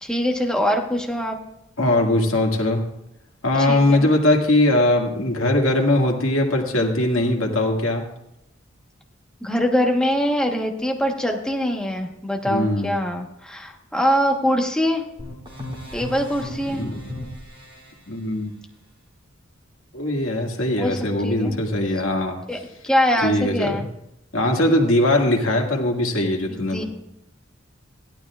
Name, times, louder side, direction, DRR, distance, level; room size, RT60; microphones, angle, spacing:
voice 1, 0.0-1.4 3.6-4.1 9.4-15.0 15.9-16.8 20.8-21.0 21.2-21.6 22.5-22.6 22.8-23.8 26.5-26.8, equal, 5° left, 1 dB, 1.2 m, -23 dB
voice 2, 1.8-2.8 3.4-8.0 12.4-13.0 16.7-16.9 18.1-18.5 19.9-22.4 23.2-23.9 24.3-26.8, left 1 dB, 80° left, 1 dB, 1.9 m, -20 dB
sound 1, 15.2-17.9, left 1 dB, 25° right, 3.0 m, -35 dB
16.0 x 12.0 x 2.4 m, 0.84 s
head